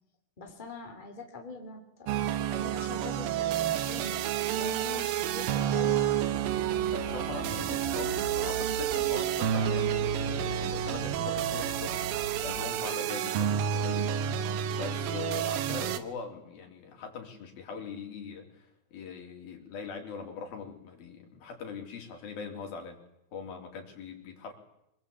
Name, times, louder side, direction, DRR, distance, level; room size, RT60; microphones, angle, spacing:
voice 1, 0.4-2.1 2.5-4.2 4.5-6.0, left 3 dB, 15° left, 3 dB, 3.1 m, -43 dB
sound 1, 2.1-16.0, right 10 dB, 80° right, 2.9 m, -30 dB
sound 2, 6.2-9.2 9.6-12.7, equal, 20° right, 5.6 m, -42 dB
voice 2, 6.9-12.0 12.4-14.2 14.5-23.0 23.3-24.5, left 5 dB, 85° left, 3 dB, 5.4 m, -41 dB
26.5 x 19.5 x 8.6 m, 0.82 s
omnidirectional pair, 4.1 m